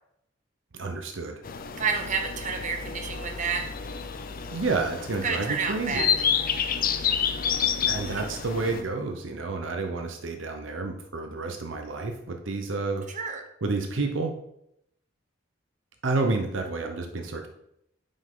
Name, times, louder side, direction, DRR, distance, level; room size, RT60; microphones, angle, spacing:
voice 1, 0.7-1.4 4.5-6.1 7.8-13.1 13.6-14.4 16.0-17.5, right 3 dB, 70° right, 4 dB, 0.8 m, -30 dB
sound 1, 1.4-8.8, left 7 dB, 45° left, 0.5 m, -29 dB
voice 2, 1.8-3.7 5.2-6.3 8.0-8.2 13.1-13.4, right 5 dB, 40° right, 4 dB, 1.0 m, -30 dB
9.4 x 5.3 x 3.8 m, 0.78 s
head